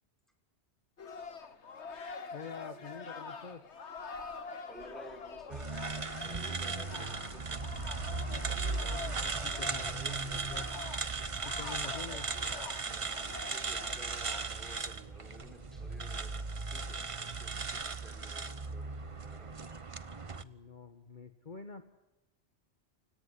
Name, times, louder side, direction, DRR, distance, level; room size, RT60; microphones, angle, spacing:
sound 1, 1.0-14.5, left 4 dB, 85° left, 1.7 m, -45 dB
voice 1, 2.3-3.7 8.3-10.7 11.4-12.3 20.4-21.9, left 5 dB, 45° left, 8 dB, 1.4 m, -47 dB
voice 2, 4.6-7.7 12.8-19.8, equal, ahead, 3 dB, 5.4 m, -55 dB
sound 2, 5.5-20.4, right 4 dB, 30° right, 1.0 m, -37 dB
29.0 x 18.0 x 8.4 m, 1.0 s
omnidirectional pair, 1.1 m